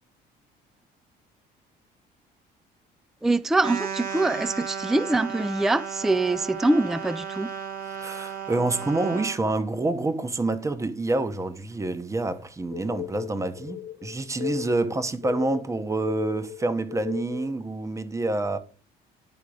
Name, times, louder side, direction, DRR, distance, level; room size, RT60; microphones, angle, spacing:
voice 1, 3.2-7.5, right 2 dB, ahead, 0.3 m, -24 dB
sound 1, 3.6-9.4, right 7 dB, 60° right, 1.4 m, -34 dB
voice 2, 7.9-18.6, right 2 dB, 20° right, 0.9 m, -27 dB
sound 2, 12.7-17.6, left 13 dB, 55° left, 0.6 m, -37 dB
11.0 x 3.7 x 4.9 m
cardioid pair, 110°, 17 cm